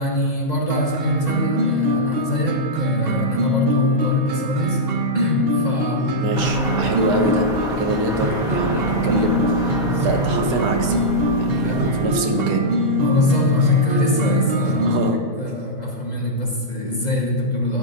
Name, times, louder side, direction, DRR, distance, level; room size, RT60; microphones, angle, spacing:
voice 1, 0.0-4.8 5.1-6.2 8.9-9.1 9.7-10.3 11.6-11.9 13.0-17.8, left 2 dB, 30° left, -3 dB, 1.2 m, -23 dB
sound 1, 0.7-15.1, right 1 dB, 60° right, 0.6 m, -23 dB
voice 2, 6.0-11.0 11.3-12.6 14.6-15.2, right 2 dB, 75° right, 4 dB, 1.4 m, -25 dB
sound 2, 6.3-12.1, left 1 dB, 5° right, 1.0 m, -29 dB
11.0 x 10.5 x 2.6 m, 2.1 s
omnidirectional pair, 1.7 m